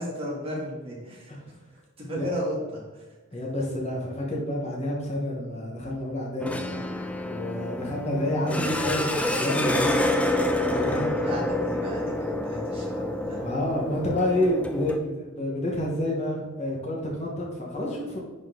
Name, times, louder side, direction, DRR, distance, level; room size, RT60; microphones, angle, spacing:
voice 1, 0.0-1.3 2.0-3.0 3.3-3.4 4.3-4.4 10.6-13.5, equal, 25° right, -4 dB, 1.9 m, -34 dB
voice 2, 3.3-6.6 7.2-9.9 10.6-11.2 13.4-18.2, left 1 dB, 30° left, -3 dB, 1.2 m, -29 dB
sound 1, 6.4-15.0, left 1 dB, 5° left, 0.3 m, -28 dB
10.5 x 4.0 x 3.7 m, 1.2 s
head